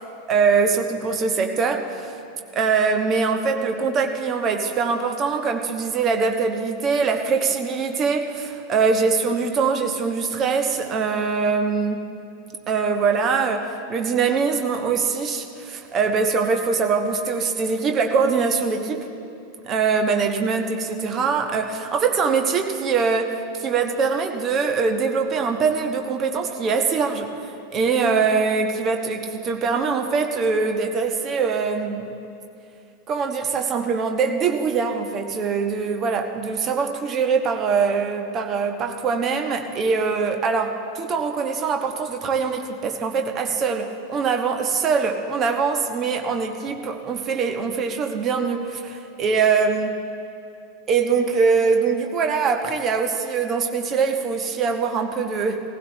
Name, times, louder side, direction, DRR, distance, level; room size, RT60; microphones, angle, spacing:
voice 1, 0.3-2.1 2.5-12.0 12.7-13.6 13.9-19.1 19.6-32.2 33.1-50.0 50.9-55.6, right 5 dB, 30° right, 4 dB, 1.2 m, -23 dB
18.5 x 16.0 x 3.3 m, 2.5 s
figure-of-eight pair, 90°, 0 cm